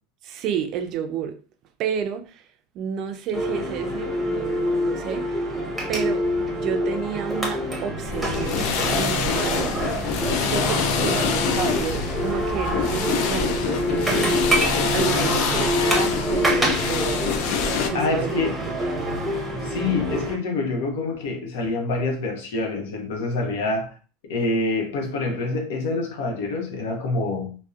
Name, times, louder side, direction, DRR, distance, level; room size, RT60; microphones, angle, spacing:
voice 1, 0.2-1.4 1.8-2.4 2.7-5.5 5.9-9.8 10.4-17.3 17.6-18.5 18.8-19.2, right 8 dB, 45° right, 0.3 m, -31 dB
sound 1, 3.3-20.4, equal, 5° right, 0.7 m, -26 dB
sound 2, 8.1-17.9, left 6 dB, 60° left, 0.3 m, -25 dB
voice 2, 17.9-18.6 19.6-23.9 24.2-27.5, left 3 dB, 80° left, 0.7 m, -26 dB
2.6 x 2.0 x 2.3 m
supercardioid pair, 130°, 0 cm